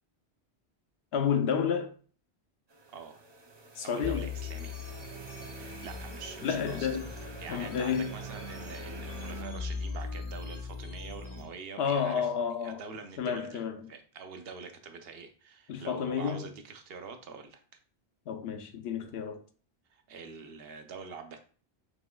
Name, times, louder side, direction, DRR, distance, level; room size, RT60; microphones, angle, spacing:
voice 1, 1.1-1.9 3.8-4.3 6.4-7.1 7.5-8.1 11.8-12.8 13.2-13.8 15.7-16.4 18.3-19.4, left 7 dB, 75° left, 0.8 m, -30 dB
sound 1, 2.7-9.4, right 3 dB, 40° right, 0.4 m, -48 dB
voice 2, 2.9-3.3 3.8-4.9 5.5-6.9 7.4-12.3 12.6-13.6 13.9-17.6 19.9-21.4, right 5 dB, 70° right, 0.8 m, -45 dB
sound 2, 4.0-11.4, left 4 dB, 15° left, 0.6 m, -40 dB
6.1 x 2.9 x 2.2 m
omnidirectional pair, 1.1 m